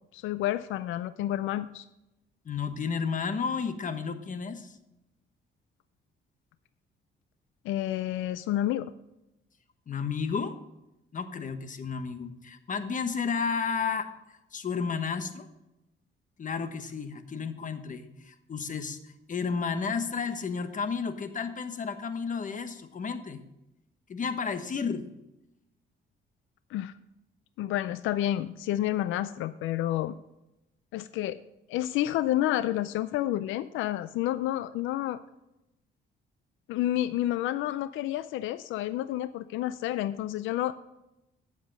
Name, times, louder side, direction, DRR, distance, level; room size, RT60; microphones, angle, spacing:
voice 1, 0.1-1.8 7.6-8.9 26.7-26.9 27.6-30.1 30.9-31.4 31.7-35.2 36.7-40.7, left 13 dB, 90° left, 14 dB, 0.4 m, -29 dB
voice 2, 2.4-4.8 9.9-10.6 11.1-14.1 14.5-15.5 16.4-23.4 24.1-25.1, left 5 dB, 40° left, 9 dB, 1.1 m, -32 dB
10.0 x 7.3 x 5.4 m, 0.89 s
cardioid pair, 90°, 20 cm